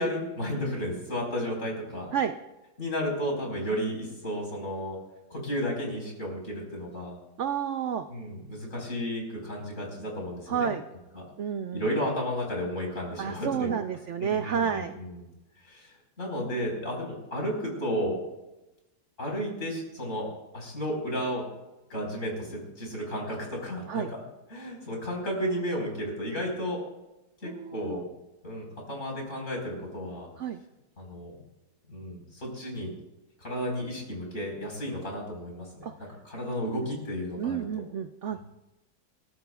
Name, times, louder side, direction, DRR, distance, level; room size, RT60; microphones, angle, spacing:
voice 1, 0.0-2.1 2.8-5.0 5.3-7.2 8.1-10.7 11.2-11.3 11.7-13.7 14.2-15.2 15.6-18.2 19.2-20.3 20.5-21.4 21.9-24.2 24.5-26.8 27.4-28.0 28.4-30.3 31.0-31.4 31.9-32.9 33.4-35.9 36.3-37.6 38.3-38.4, equal, 40° left, -1 dB, 5.1 m, -33 dB
voice 2, 7.4-8.1 10.5-10.8 11.4-11.9 13.2-14.9 23.9-24.1 27.4-28.0 30.4-30.6 35.8-35.9 37.4-38.4, right 8 dB, 70° right, 8 dB, 0.7 m, -30 dB
29.0 x 14.0 x 2.4 m, 1.0 s
omnidirectional pair, 1.9 m